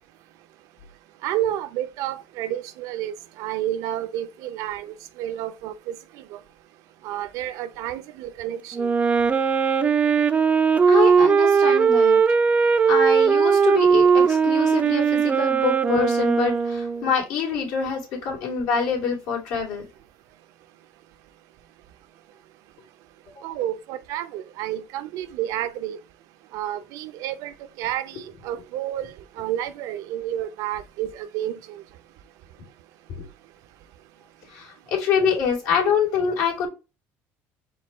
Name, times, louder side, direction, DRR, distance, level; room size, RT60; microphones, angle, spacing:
voice 1, 1.2-6.0 6.3-6.4 7.0-8.9 23.4-26.0 26.5-31.8, right 12 dB, 70° right, 0.6 m, -30 dB
Wind instrument woodwind instrument, 8.7-17.1, right 6 dB, 25° right, 0.4 m, -19 dB
voice 2, 10.9-12.2 12.9-19.8 33.2-33.3 34.5-36.7, left 6 dB, 75° left, 2.5 m, -25 dB
4.5 x 2.3 x 4.4 m
cardioid pair, 140°, 6 cm